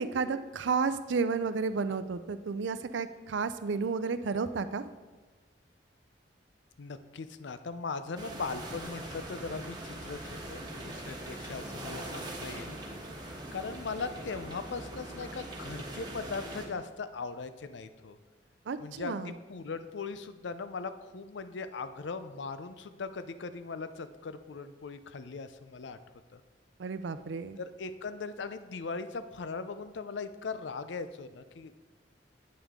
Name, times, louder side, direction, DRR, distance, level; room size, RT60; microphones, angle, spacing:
voice 1, 0.0-4.9 18.7-19.3 26.8-27.6, right 5 dB, 85° right, 11 dB, 0.5 m, -32 dB
voice 2, 6.8-12.8 13.5-18.2 18.8-26.0 26.3-26.4 27.6-31.7, left 4 dB, 80° left, 11 dB, 0.5 m, -39 dB
sound 1, 8.2-16.7, right 1 dB, 25° right, 1.4 m, -41 dB
8.8 x 8.7 x 3.6 m, 1.3 s
head